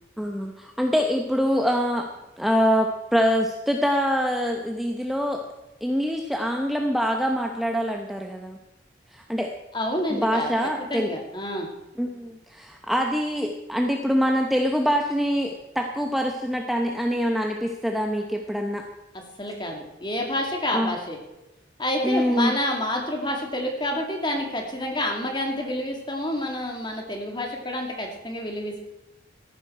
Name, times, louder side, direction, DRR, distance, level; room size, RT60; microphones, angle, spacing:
voice 1, 0.2-2.1 2.4-5.4 5.8-8.6 9.1-9.5 10.1-11.1 12.0-18.8 20.7-20.9 22.0-22.5, equal, ahead, 2 dB, 0.8 m, -24 dB
voice 2, 9.7-11.7 19.1-21.2 21.8-28.8, left 1 dB, 25° left, 2 dB, 2.3 m, -28 dB
14.0 x 11.5 x 4.5 m, 0.97 s
head